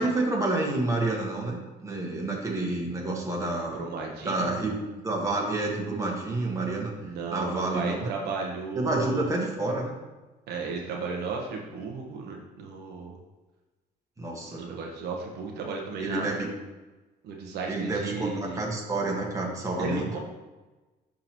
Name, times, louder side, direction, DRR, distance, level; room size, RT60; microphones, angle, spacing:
voice 1, 0.0-3.8 4.2-6.9 7.3-8.1 8.7-9.9 14.2-14.6 16.0-16.5 17.7-20.1, right 2 dB, 20° right, -2 dB, 1.6 m, -29 dB
voice 2, 3.7-4.5 6.9-9.3 10.5-13.2 14.5-16.2 17.2-18.6 19.8-20.2, right 4 dB, 75° right, 0 dB, 1.1 m, -34 dB
11.0 x 3.8 x 3.0 m, 1.2 s
cardioid pair, 110°, 17 cm